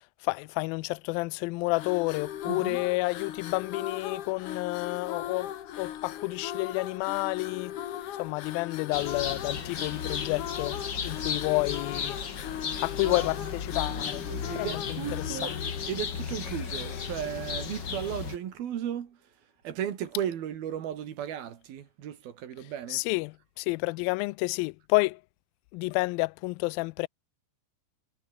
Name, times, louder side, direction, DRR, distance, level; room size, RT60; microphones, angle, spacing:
voice 1, 0.2-7.8 8.2-10.8 11.0-12.2 12.8-14.3 14.6-15.6 22.9-25.2 25.7-27.1, left 26 dB, 85° left, 2.1 m, -30 dB
sound 1, 1.7-18.1, left 11 dB, 60° left, 2.6 m, -39 dB
voice 2, 2.5-2.8 13.0-13.3 13.7-15.6 15.9-19.4 19.6-23.0, right 10 dB, 70° right, 4.0 m, -36 dB
sound 2, 8.9-18.4, left 6 dB, 40° left, 1.7 m, -35 dB
omnidirectional pair, 4.6 m